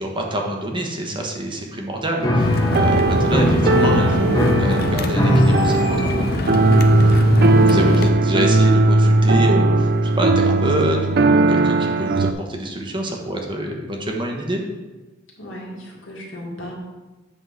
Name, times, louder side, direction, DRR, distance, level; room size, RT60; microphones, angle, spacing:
voice 1, 0.0-14.6, right 1 dB, 25° right, 1 dB, 1.1 m, -27 dB
Piano, 2.2-10.7, left 1 dB, 20° left, 1.1 m, -23 dB
sound 1, 2.4-8.1, left 2 dB, 55° left, 0.6 m, -24 dB
sound 2, 2.5-12.3, right 2 dB, 55° right, 0.5 m, -18 dB
voice 2, 15.4-16.7, equal, 75° left, -2 dB, 2.0 m, -35 dB
8.1 x 3.8 x 6.3 m, 1.2 s
head